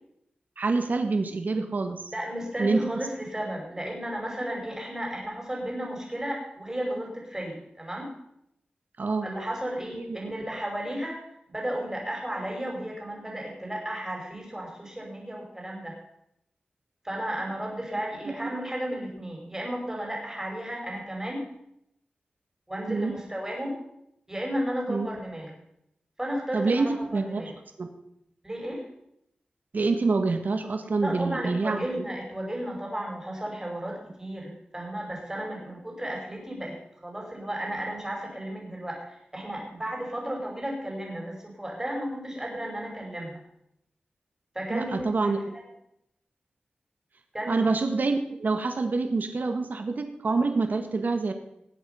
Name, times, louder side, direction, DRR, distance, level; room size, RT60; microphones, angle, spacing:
voice 1, 0.6-2.0 2.6-2.8 9.0-9.3 10.0-10.2 18.4-18.5 22.9-23.1 24.9-25.1 26.5-27.4 27.8-27.9 29.7-31.9 44.7-45.5 47.5-51.3, right 3 dB, 65° right, 6 dB, 1.6 m, -26 dB
voice 2, 2.1-8.1 9.2-15.9 17.0-21.4 22.7-23.8 24.3-25.5 26.2-27.6 28.4-28.9 31.0-43.4 44.5-45.6 47.3-47.7, right 1 dB, 15° right, 0 dB, 5.5 m, -34 dB
19.5 x 7.9 x 5.7 m, 0.79 s
wide cardioid pair, 65°, 3 cm